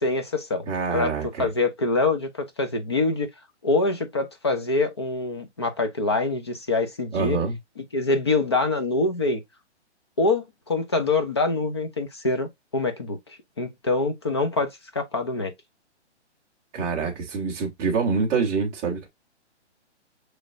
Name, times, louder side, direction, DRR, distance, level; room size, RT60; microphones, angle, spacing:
voice 1, 0.0-0.6 0.9-1.1 1.4-3.3 3.6-7.4 7.8-9.4 10.2-13.2 13.6-14.7 14.9-15.5, left 3 dB, 25° left, 0.4 m, -25 dB
voice 2, 0.7-1.4 7.1-7.6 16.7-19.1, right 5 dB, 10° right, 0.7 m, -26 dB
6.4 x 3.1 x 2.4 m
hypercardioid pair, 155°, 35 cm